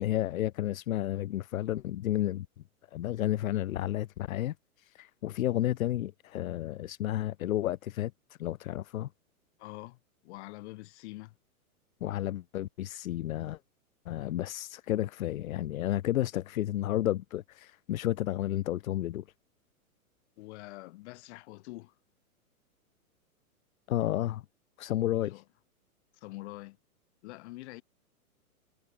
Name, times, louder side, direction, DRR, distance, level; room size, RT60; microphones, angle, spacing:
voice 1, 0.0-2.5 2.9-8.1 8.4-9.1 12.0-13.6 14.1-19.2 23.9-24.4 24.8-25.4, left 13 dB, 65° left, 1.0 m, -31 dB
voice 2, 9.6-11.3 20.4-21.9 25.3-25.4 26.2-26.8 27.2-27.8, left 20 dB, 50° left, 4.7 m, -45 dB
hypercardioid pair, 125°, 44 cm